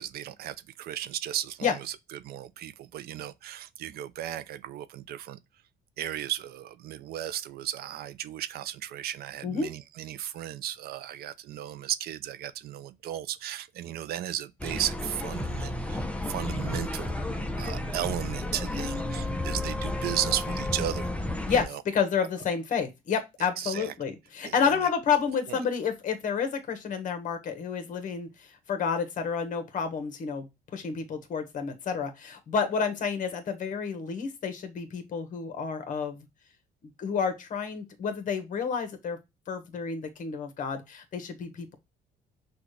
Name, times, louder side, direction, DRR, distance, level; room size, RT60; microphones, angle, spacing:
voice 1, 0.0-5.4 6.0-17.2 17.6-21.1 21.5-21.8 23.6-23.9 24.4-24.5 24.8-24.9 25.5-25.6, right 12 dB, 65° right, 0.5 m, -35 dB
sound 1, 14.6-21.6, left 1 dB, 10° left, 0.7 m, -32 dB
voice 2, 21.5-30.5 30.7-36.3 37.0-39.2 39.5-41.8, left 6 dB, 50° left, 1.3 m, -30 dB
6.0 x 2.4 x 3.2 m
cardioid pair, 110°, 17 cm